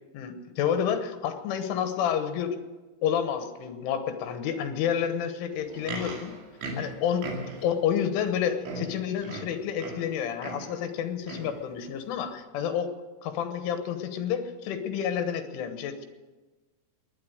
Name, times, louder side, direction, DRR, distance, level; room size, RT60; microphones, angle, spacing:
voice 1, 0.1-2.6 3.0-6.3 6.8-7.3 7.6-12.9 13.2-16.1, left 8 dB, 80° left, 8 dB, 3.6 m, -29 dB
Livestock farm animals working animals, 5.5-7.8 8.3-8.4 8.6-10.1 10.4-10.7 11.2-11.6 12.3-12.4, right 2 dB, 75° right, 4.7 m, -38 dB
20.0 x 10.5 x 6.5 m, 1.2 s
omnidirectional pair, 5.5 m